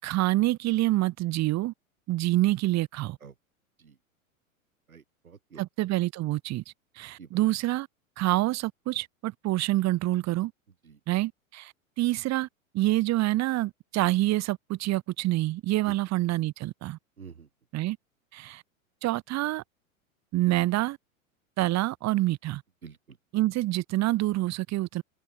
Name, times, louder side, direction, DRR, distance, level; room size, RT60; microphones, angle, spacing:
voice 1, 0.0-1.7 2.1-3.2 5.6-6.6 7.0-7.9 8.2-10.5 11.1-12.5 12.7-17.0 17.7-18.0 18.3-18.6 19.0-19.6 20.3-21.0 21.6-22.6 23.3-25.0, right 17 dB, 40° right, 4.1 m, -27 dB
voice 2, 4.9-5.6 7.2-7.3 10.8-11.0 15.9-16.0 17.2-17.5 22.8-23.2, right 6 dB, 90° right, 5.5 m, -47 dB
hypercardioid pair, 100°, 41 cm